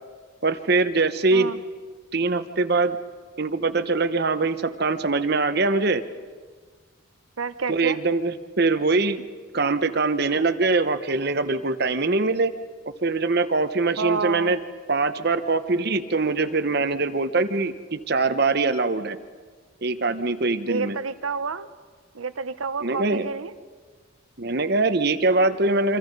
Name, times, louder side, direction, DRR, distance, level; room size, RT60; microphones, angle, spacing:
voice 1, 0.4-1.5 2.1-3.0 3.4-6.0 7.7-9.2 9.5-12.5 13.0-14.6 14.9-19.2 19.8-21.0 22.8-23.3 24.4-26.0, right 3 dB, 50° right, 11 dB, 1.0 m, -23 dB
voice 2, 7.4-8.0 14.0-14.5 20.7-21.7 22.1-23.5, right 5 dB, 85° right, 13 dB, 0.9 m, -29 dB
28.0 x 25.0 x 5.4 m, 1.6 s
head